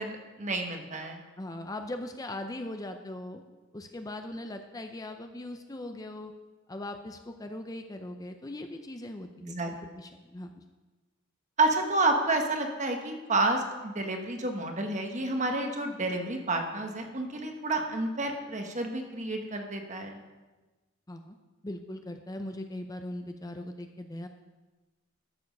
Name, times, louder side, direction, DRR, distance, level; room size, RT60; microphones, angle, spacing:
voice 1, 0.0-1.2 9.4-9.7 11.6-20.2, right 2 dB, 35° right, 4 dB, 1.3 m, -30 dB
voice 2, 1.4-3.4 3.7-6.3 6.7-10.6 21.1-21.4 21.6-24.3, left 1 dB, 20° left, 6 dB, 0.5 m, -40 dB
13.0 x 7.1 x 5.3 m, 1.2 s
head